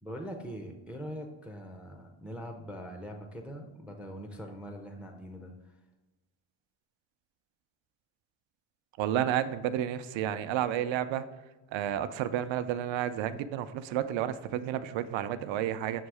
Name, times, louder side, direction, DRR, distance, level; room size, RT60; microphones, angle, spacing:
voice 1, 0.0-5.5, equal, 5° right, 4 dB, 0.4 m, -42 dB
voice 2, 9.0-11.2 11.7-16.1, right 10 dB, 70° right, 12 dB, 0.6 m, -31 dB
7.4 x 2.7 x 4.7 m, 1.1 s
cardioid pair, 150°, 48 cm